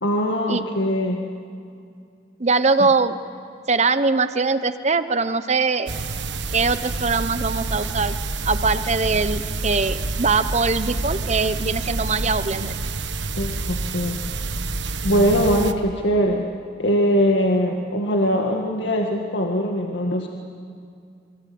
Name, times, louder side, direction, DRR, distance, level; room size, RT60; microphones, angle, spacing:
voice 1, 0.0-1.3 2.8-2.9 13.4-14.2 15.0-16.5 16.8-20.3, equal, 75° left, 1 dB, 2.0 m, -21 dB
voice 2, 2.4-3.2 3.7-5.9 6.5-8.2 8.4-12.7, right 4 dB, 40° right, 11 dB, 1.1 m, -22 dB
sound 1, 5.9-15.7, right 3 dB, 80° right, 1.2 m, -28 dB
28.0 x 24.0 x 8.7 m, 2.4 s
head